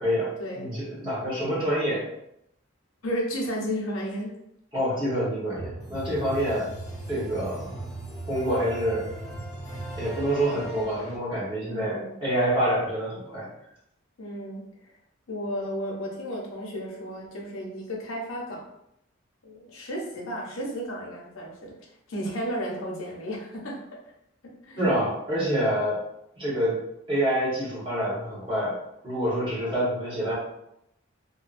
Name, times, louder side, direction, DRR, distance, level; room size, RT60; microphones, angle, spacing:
voice 1, 0.0-2.1 4.7-6.7 7.1-7.7 8.3-9.1 10.0-13.5 24.8-26.0 26.4-26.8 27.1-28.8 29.0-30.3, equal, 25° right, -8 dB, 1.1 m, -27 dB
voice 2, 3.0-4.3 11.7-12.2 14.2-14.6 15.3-18.6 19.4-21.7 22.1-23.8 24.4-25.0, equal, 85° left, -2 dB, 0.7 m, -33 dB
sound 1, 5.5-11.2, right 1 dB, 20° left, 0.7 m, -38 dB
2.7 x 2.2 x 2.5 m, 0.80 s
head